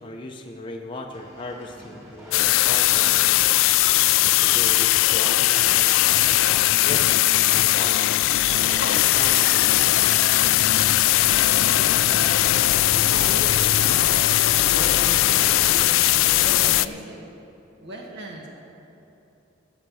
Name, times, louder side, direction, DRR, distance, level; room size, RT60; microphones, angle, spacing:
voice 1, 0.0-3.4 4.2-6.0 6.8-8.0 8.7-10.1, left 2 dB, 25° left, 0 dB, 0.7 m, -38 dB
sound 1, 1.1-13.3, equal, 15° right, 2.4 m, -45 dB
sound 2, 2.3-16.9, left 16 dB, 80° left, 0.3 m, -19 dB
sound 3, 8.4-16.1, left 4 dB, 60° left, 0.8 m, -35 dB
voice 2, 12.0-12.4 12.9-15.9 16.2-17.2 17.8-18.5, right 1 dB, 60° right, -1 dB, 1.6 m, -36 dB
16.5 x 6.7 x 6.3 m, 2.9 s
head